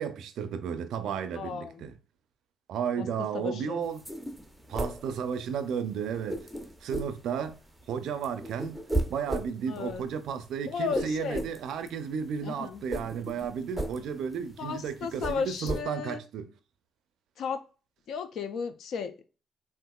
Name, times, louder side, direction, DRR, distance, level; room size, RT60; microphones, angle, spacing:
voice 1, 0.0-1.9 2.7-4.0 4.7-6.4 6.8-7.6 7.9-8.8 9.1-16.5, right 7 dB, 80° right, 0.4 m, -33 dB
voice 2, 1.3-1.8 3.0-3.1 3.3-3.9 9.7-10.0 10.6-11.4 12.4-12.8 14.6-16.2 17.4-17.6 18.1-19.2, left 6 dB, 70° left, 0.4 m, -34 dB
sound 1, 3.9-5.8 6.1-7.9 8.1-15.8, right 1 dB, ahead, 0.6 m, -35 dB
3.6 x 2.4 x 2.2 m
cardioid pair, 90°, 0 cm